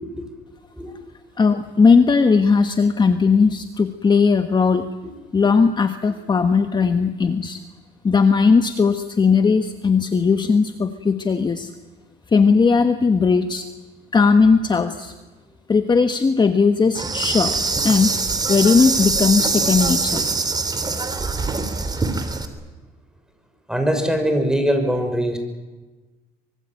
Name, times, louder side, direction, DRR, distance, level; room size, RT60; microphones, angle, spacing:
voice 1, 1.4-4.9 5.3-7.6 8.0-11.7 12.3-13.7 14.1-15.1 15.7-17.5 17.8-18.1 18.5-20.2, left 5 dB, 25° left, 9 dB, 1.4 m, -17 dB
Insect, 16.9-22.5, right 3 dB, 25° right, 3.3 m, -23 dB
voice 2, 23.7-25.4, equal, 5° right, 5 dB, 6.0 m, -21 dB
24.5 x 24.0 x 9.1 m, 1.2 s
cardioid pair, 110°, 17 cm